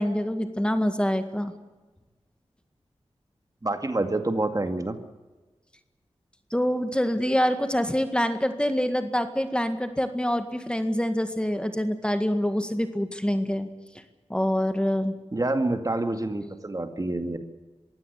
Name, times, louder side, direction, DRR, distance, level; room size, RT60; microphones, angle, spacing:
voice 1, 0.0-1.5 6.5-13.7 14.3-15.1, equal, 10° left, 8 dB, 1.9 m, -25 dB
voice 2, 3.6-5.0 15.3-17.4, right 2 dB, 35° right, 7 dB, 2.2 m, -27 dB
22.0 x 16.5 x 8.2 m, 1.2 s
wide cardioid pair, 55°, 11 cm